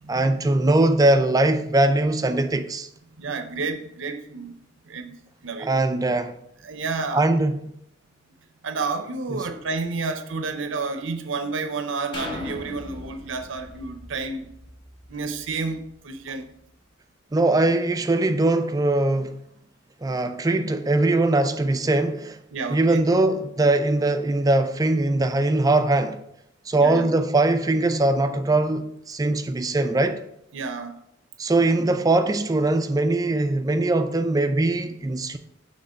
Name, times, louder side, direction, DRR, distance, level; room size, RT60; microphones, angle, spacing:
voice 1, 0.1-2.9 5.6-6.3 7.1-7.6 9.3-9.4 17.3-19.3 20.0-22.4 22.7-26.2 26.7-30.2 31.4-35.4, right 2 dB, 20° right, 0.4 m, -21 dB
voice 2, 3.2-4.5 4.9-5.1 5.4-5.7 6.6-7.3 8.6-14.5 15.1-16.5 22.5-23.0 26.8-27.1 30.5-31.0, right 4 dB, 70° right, 0.6 m, -30 dB
sound 1, 12.1-15.9 16.4-16.5, left 1 dB, 25° left, 1.2 m, -39 dB
6.6 x 3.3 x 5.0 m
head